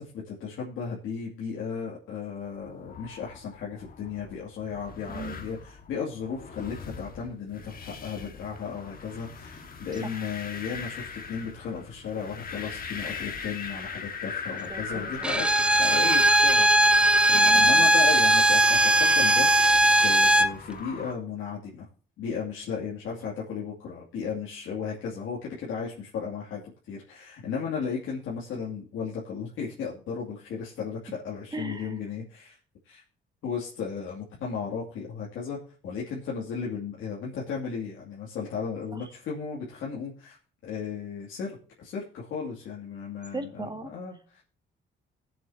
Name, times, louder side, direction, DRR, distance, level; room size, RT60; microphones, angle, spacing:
voice 1, 0.0-15.4 15.7-18.6 18.9-21.9 22.2-32.6 32.8-33.0 33.4-40.4 40.6-44.4, left 6 dB, 85° left, -4 dB, 2.5 m, -35 dB
sound 1, 2.6-21.1, left 5 dB, 45° left, 1.7 m, -40 dB
voice 2, 14.7-15.1 17.4-17.9 31.5-31.9 43.3-43.9, right 2 dB, 20° right, 7 dB, 1.9 m, -37 dB
Bowed string instrument, 15.2-20.5, right 1 dB, 5° right, 0.5 m, -19 dB
19.5 x 7.7 x 2.8 m, 0.39 s
cardioid pair, 90°, 20 cm